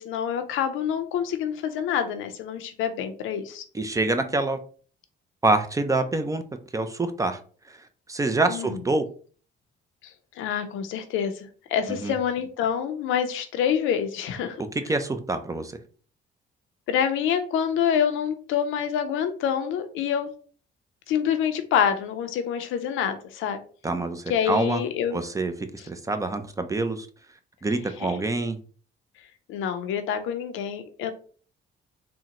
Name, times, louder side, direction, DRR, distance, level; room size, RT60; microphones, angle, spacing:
voice 1, 0.0-3.6 8.5-8.8 10.4-14.6 16.9-20.3 21.1-23.6 24.3-25.2 28.0-28.2 29.5-31.1, left 8 dB, 90° left, 8 dB, 0.5 m, -26 dB
voice 2, 3.7-4.6 5.4-6.4 6.7-7.4 7.7-7.8 8.1-9.0 11.9-12.1 14.9-15.7 23.8-24.8 25.1-25.5 25.8-27.1 27.6-28.6, right 2 dB, 15° right, 8 dB, 0.4 m, -26 dB
3.7 x 2.1 x 2.8 m, 0.42 s
cardioid pair, 90°, 20 cm